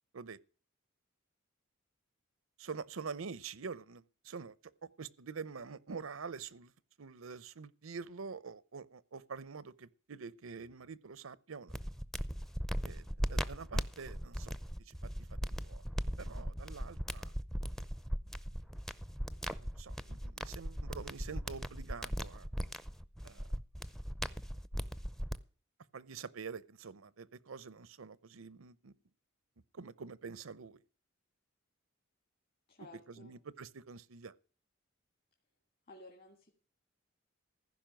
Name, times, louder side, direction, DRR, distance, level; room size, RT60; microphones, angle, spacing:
voice 1, 2.6-4.6 4.8-6.7 7.0-11.7 12.8-14.5 14.9-15.0 15.6-15.8 16.2-17.3 19.8-22.5 23.2-23.4 25.9-28.9 29.7-30.8 33.1-34.3, right 5 dB, 80° right, 0.7 m, -46 dB
sound 1, 11.7-25.4, equal, ahead, 0.6 m, -38 dB
voice 2, 32.7-33.3 35.9-36.5, left 2 dB, 45° left, 2.3 m, -55 dB
15.0 x 5.6 x 9.0 m
head